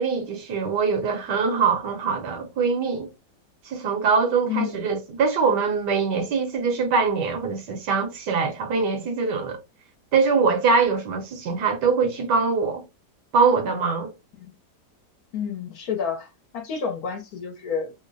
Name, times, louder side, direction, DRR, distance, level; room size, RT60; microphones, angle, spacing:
voice 1, 0.0-3.1 3.6-9.6 10.1-12.8 13.3-14.1, right 5 dB, 80° right, 1.6 m, -23 dB
voice 2, 15.3-17.9, left 7 dB, 65° left, 1.3 m, -30 dB
3.6 x 2.1 x 3.8 m
omnidirectional pair, 1.8 m